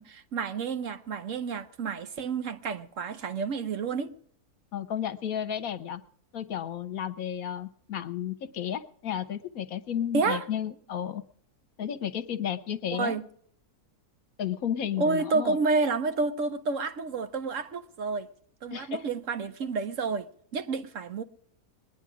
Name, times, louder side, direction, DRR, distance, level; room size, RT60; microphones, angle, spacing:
voice 1, 0.0-4.1 10.1-10.4 12.9-13.2 15.0-18.3 18.6-20.3 20.5-21.2, right 4 dB, 60° right, 1.1 m, -30 dB
voice 2, 4.7-6.0 6.3-11.2 11.8-13.2 14.4-15.6 18.7-19.0 19.4-19.5, left 9 dB, 70° left, 1.2 m, -33 dB
21.0 x 9.9 x 4.9 m
omnidirectional pair, 1.6 m